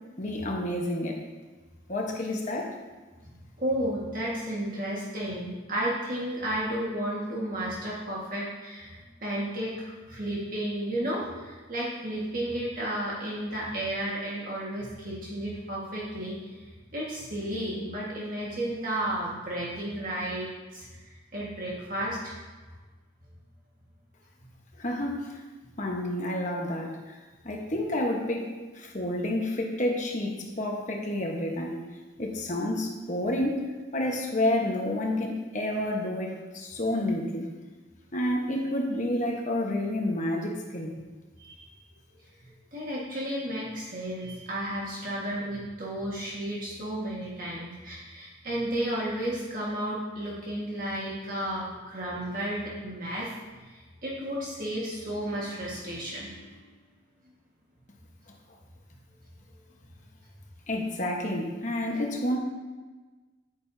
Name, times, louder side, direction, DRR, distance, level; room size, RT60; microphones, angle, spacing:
voice 1, 0.2-1.2 1.9-2.7 24.8-25.4 25.8-27.1 27.4-28.5 28.7-31.8 32.2-37.5 38.1-40.9 60.7-62.4, left 1 dB, 40° left, 0 dB, 1.2 m, -29 dB
voice 2, 3.6-8.9 9.2-16.3 16.9-20.9 21.3-22.3 41.4-41.6 42.7-53.3 53.7-56.3, right 1 dB, 45° right, -5 dB, 1.6 m, -32 dB
10.0 x 8.9 x 2.7 m, 1.3 s
head